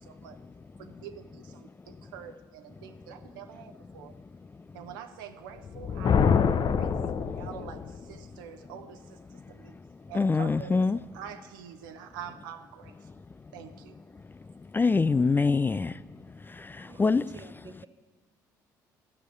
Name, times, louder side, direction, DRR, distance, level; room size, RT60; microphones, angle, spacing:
voice 1, 0.0-0.4 0.8-4.1 4.7-6.2 6.7-9.7 10.1-10.8 11.1-13.0 13.5-14.0, right 8 dB, 80° right, 1.0 m, -45 dB
Thunder, 5.6-8.0, left 6 dB, 45° left, 0.8 m, -25 dB
voice 2, 10.1-11.0 14.7-15.9 16.6-17.3, left 4 dB, 20° left, 0.3 m, -24 dB
voice 3, 16.8-17.9, right 3 dB, 40° right, 1.7 m, -49 dB
14.0 x 6.5 x 9.1 m
hypercardioid pair, 50°, 11 cm